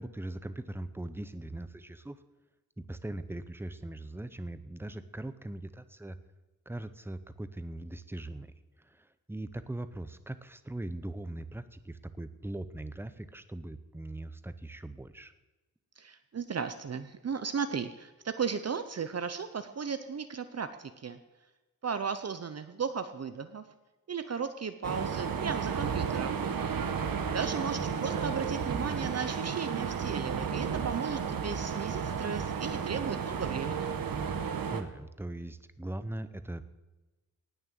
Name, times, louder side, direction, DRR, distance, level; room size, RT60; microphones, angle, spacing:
voice 1, 0.0-2.2 2.8-6.2 6.7-15.3 27.2-27.9 34.7-36.7, right 1 dB, 5° right, 12 dB, 0.6 m, -40 dB
voice 2, 16.0-21.2 21.8-23.6 24.1-26.4 27.3-33.9, right 6 dB, 45° right, 10 dB, 0.7 m, -35 dB
sound 1, 24.8-34.8, right 6 dB, 80° right, 1.3 m, -33 dB
18.5 x 6.6 x 7.6 m, 1.1 s
wide cardioid pair, 165°, 34 cm